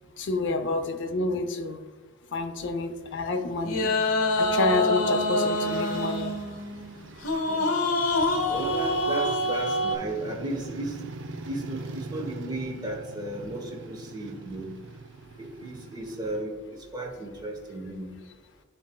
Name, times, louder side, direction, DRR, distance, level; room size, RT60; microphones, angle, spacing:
voice 1, 0.2-1.8 2.3-4.0 4.4-6.4, left 3 dB, 60° left, 7 dB, 0.6 m, -29 dB
sound 1, 2.4-16.4, right 3 dB, 60° right, 0.5 m, -43 dB
sound 2, 3.6-10.0, left 1 dB, 90° left, 1.0 m, -26 dB
voice 2, 7.3-7.7 8.5-11.0 11.4-14.7 15.4-18.1, right 2 dB, 20° right, 0 dB, 1.1 m, -35 dB
12.5 x 4.2 x 2.3 m, 1.4 s
head